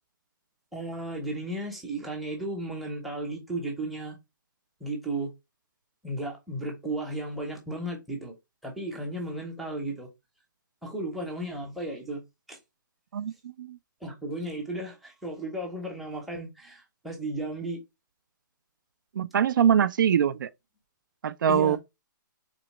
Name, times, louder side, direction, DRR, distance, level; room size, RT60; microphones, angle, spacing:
voice 1, 0.7-4.2 4.8-5.3 6.0-8.3 8.6-10.1 10.8-12.2 12.5-12.6 14.0-17.8 21.5-21.8, right 1 dB, ahead, 0.7 m, -34 dB
voice 2, 13.1-13.8 19.2-20.5 21.2-21.8, right 8 dB, 70° right, 0.4 m, -23 dB
3.9 x 3.0 x 3.0 m
hypercardioid pair, 170°, 11 cm